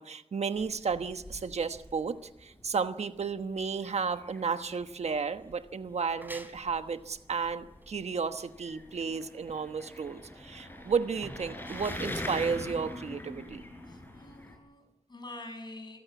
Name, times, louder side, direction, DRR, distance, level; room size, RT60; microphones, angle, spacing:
voice 1, 0.0-13.6, right 5 dB, 70° right, 9 dB, 1.2 m, -33 dB
sound 1, 0.5-14.6, left 1 dB, 20° left, 6.0 m, -44 dB
sound 2, 5.9-13.3, right 1 dB, 15° right, 3.4 m, -51 dB
voice 2, 13.9-16.0, left 2 dB, 40° left, 5 dB, 6.8 m, -46 dB
26.0 x 15.5 x 8.3 m, 0.99 s
wide cardioid pair, 75°, 12 cm